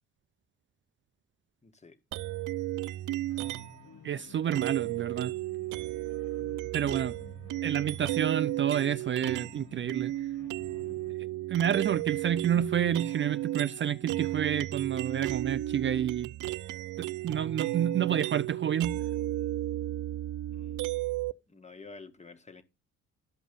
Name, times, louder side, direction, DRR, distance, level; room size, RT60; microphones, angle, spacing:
voice 1, 1.6-2.0 20.5-20.8 21.5-22.6, left 4 dB, 20° left, 1.6 m, -50 dB
sound 1, 2.1-3.8 4.5-9.6 9.9-21.3, right 15 dB, 85° right, 0.6 m, -34 dB
sound 2, 3.3-11.1, left 6 dB, 80° left, 1.8 m, -54 dB
voice 2, 4.0-5.3 6.7-7.1 7.6-10.1 11.5-16.3 17.0-19.0, right 9 dB, 40° right, 0.4 m, -29 dB
12.5 x 5.4 x 5.1 m
cardioid pair, 90°, 30 cm